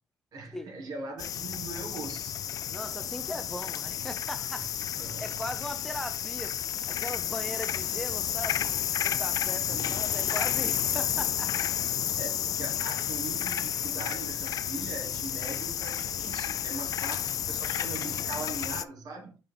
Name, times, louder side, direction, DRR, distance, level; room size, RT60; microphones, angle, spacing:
voice 1, 0.3-2.4 5.0-5.2 9.5-10.0 12.1-19.4, right 3 dB, 65° right, 2.5 m, -40 dB
sound 1, 1.2-18.8, left 10 dB, 60° left, 0.4 m, -31 dB
voice 2, 2.7-6.6 6.9-8.6 9.0-11.6, left 1 dB, 5° left, 0.6 m, -39 dB
sound 2, 7.9-11.6, right 1 dB, 15° right, 1.6 m, -53 dB
5.6 x 5.2 x 3.5 m
cardioid pair, 80°, 7 cm